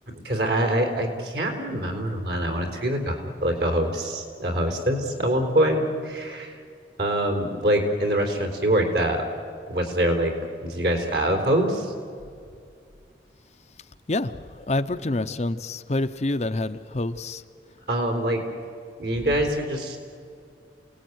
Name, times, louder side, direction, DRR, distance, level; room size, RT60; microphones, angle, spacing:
voice 1, 0.2-6.6 7.0-9.2 9.7-10.3 10.6-11.9 17.9-18.4 19.0-20.0, right 1 dB, 60° right, 5 dB, 3.8 m, -24 dB
voice 2, 14.7-17.4, left 2 dB, 40° left, 9 dB, 0.7 m, -27 dB
28.0 x 18.5 x 9.4 m, 2.4 s
head